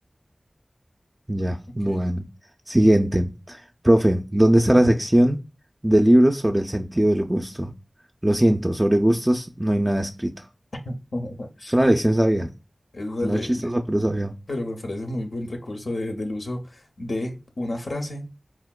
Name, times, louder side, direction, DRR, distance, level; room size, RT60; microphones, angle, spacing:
voice 1, 1.3-2.2 2.7-5.4 5.8-7.7 8.2-10.5 11.7-12.5 13.2-14.3, right 1 dB, 20° right, 0.3 m, -20 dB
voice 2, 10.9-11.7 12.9-13.7 14.5-18.3, left 1 dB, 85° left, 0.5 m, -31 dB
4.3 x 2.1 x 2.2 m
wide cardioid pair, 45°, 0 cm